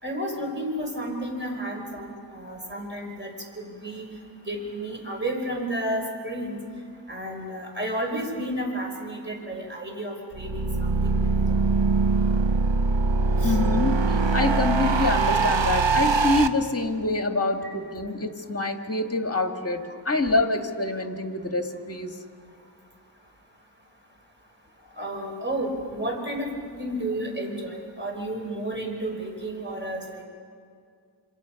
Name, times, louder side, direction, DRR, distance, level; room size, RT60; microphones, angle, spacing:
voice 1, 0.0-4.1 4.5-6.6 7.1-11.2 13.4-13.6 25.0-26.5 26.8-30.2, right 1 dB, 25° right, 1 dB, 5.2 m, -32 dB
sound 1, 10.3-16.5, right 4 dB, 75° right, 1.1 m, -22 dB
voice 2, 13.4-22.2, left 2 dB, 30° left, 5 dB, 1.9 m, -26 dB
27.5 x 26.5 x 6.0 m, 2.2 s
wide cardioid pair, 80°, 44 cm